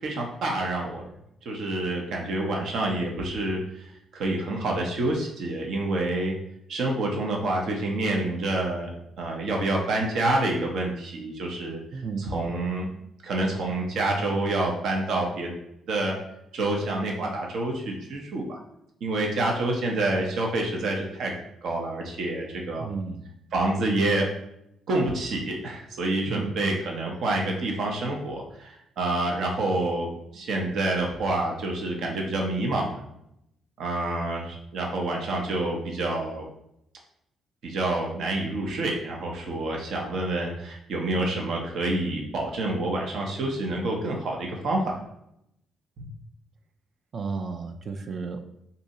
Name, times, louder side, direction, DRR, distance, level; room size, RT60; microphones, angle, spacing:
voice 1, 0.0-1.0 1.5-3.6 4.1-6.3 6.7-8.9 9.2-11.8 12.2-12.9 13.2-15.5 15.9-16.1 16.5-18.6 19.0-21.3 21.6-22.9 23.5-24.3 24.9-33.0 33.8-36.5 37.6-45.0 46.0-46.1, right 2 dB, 70° right, 0 dB, 0.7 m, -27 dB
voice 2, 11.9-12.6 22.8-23.3 26.3-26.8 47.1-48.4, right 4 dB, 50° right, 6 dB, 0.3 m, -33 dB
2.7 x 2.6 x 4.0 m, 0.79 s
cardioid pair, 90°, 0 cm